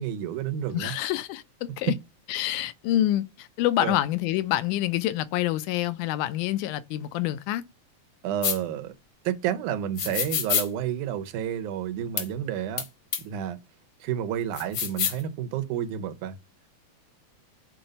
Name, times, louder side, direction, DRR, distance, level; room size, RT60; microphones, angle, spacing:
voice 1, 0.0-0.9 1.8-2.0 3.8-4.0 8.2-8.9 9.3-12.8 13.2-13.6 14.0-16.4, right 9 dB, 85° right, 2.2 m, -30 dB
voice 2, 0.7-1.4 1.8-1.9 2.3-7.6, left 14 dB, 90° left, 2.1 m, -27 dB
sound 1, 8.4-8.6 10.0-10.7 12.2-12.3 12.8-12.9 13.1-13.2 14.5-15.2, left 8 dB, 65° left, 1.4 m, -27 dB
6.1 x 3.9 x 5.2 m
omnidirectional pair, 3.5 m